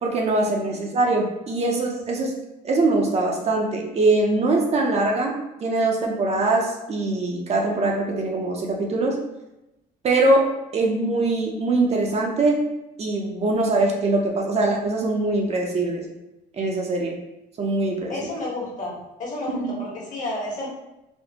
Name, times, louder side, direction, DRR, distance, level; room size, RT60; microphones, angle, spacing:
voice 1, 0.0-2.3 2.6-9.2 10.0-10.5 10.7-16.0 16.5-17.2 17.6-18.3 19.5-19.7, right 2 dB, 40° right, -1 dB, 0.6 m, -22 dB
voice 2, 18.1-18.9 19.2-20.7, left 2 dB, 50° left, -4 dB, 1.3 m, -31 dB
4.2 x 2.0 x 2.8 m, 0.94 s
cardioid pair, 110°, 17 cm